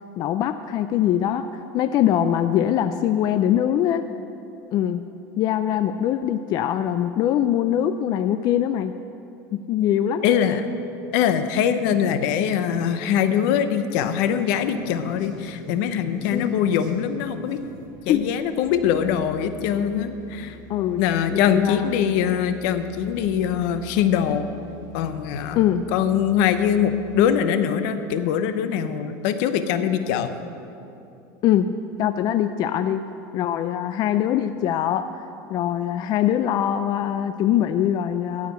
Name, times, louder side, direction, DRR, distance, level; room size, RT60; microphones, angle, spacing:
voice 1, 0.2-4.0 4.7-5.0 5.4-8.9 9.5-10.3 16.3-16.6 18.1-18.3 20.7-21.0 21.3-21.9 25.6-25.9 31.4-31.7 32.0-33.0 33.3-38.5, left 10 dB, 40° left, 9 dB, 0.4 m, -22 dB
voice 2, 10.2-10.6 11.1-17.6 18.1-20.6 21.0-24.5 24.9-25.6 25.9-30.3, left 8 dB, 70° left, 10 dB, 0.8 m, -22 dB
sound 1, 14.3-27.4, right 1 dB, 70° right, 2.5 m, -46 dB
15.0 x 5.0 x 8.0 m, 2.8 s
supercardioid pair, 135°, 10 cm